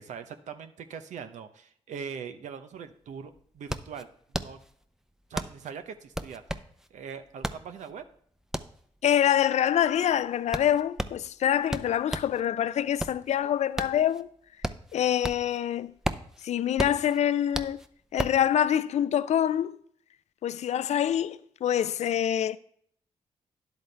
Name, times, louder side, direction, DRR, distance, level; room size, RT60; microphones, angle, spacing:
voice 1, 0.0-4.1 4.3-4.6 5.3-6.4 6.9-8.0, right 6 dB, 80° right, 0.7 m, -41 dB
sound 1, 2.7-2.8 3.1-12.4 12.8-15.6 15.9-18.5, equal, 5° right, 0.7 m, -35 dB
voice 2, 9.0-14.3 14.9-15.9 16.4-17.8 18.1-19.8 20.4-22.6, left 10 dB, 65° left, 0.4 m, -25 dB
10.5 x 7.9 x 3.4 m
cardioid pair, 60°, 12 cm